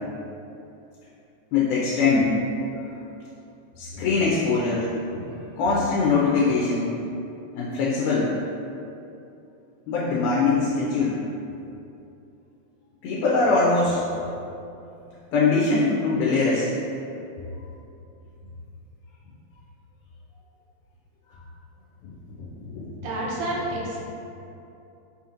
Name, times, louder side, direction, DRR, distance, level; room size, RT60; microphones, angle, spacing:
voice 1, 1.5-2.4 3.8-4.9 5.1-7.0 7.5-8.3 9.9-11.2 13.0-14.0 15.3-16.7 22.0-22.9, left 4 dB, 90° left, -6 dB, 2.1 m, -22 dB
voice 2, 23.0-24.0, right 1 dB, 75° right, -5 dB, 1.8 m, -29 dB
5.3 x 2.8 x 2.5 m, 2.7 s
omnidirectional pair, 3.5 m